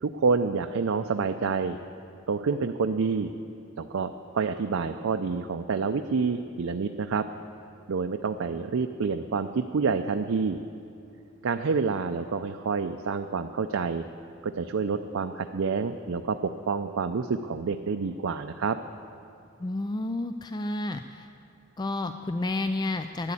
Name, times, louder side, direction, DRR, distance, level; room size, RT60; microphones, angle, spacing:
voice 1, 0.0-1.8 2.3-3.3 3.8-7.3 7.9-10.6 11.4-14.0 14.4-18.8, right 5 dB, 80° right, 7 dB, 0.5 m, -28 dB
voice 2, 19.6-21.3 21.8-23.3, left 2 dB, 20° left, 8 dB, 0.3 m, -30 dB
12.5 x 9.8 x 8.3 m, 2.6 s
head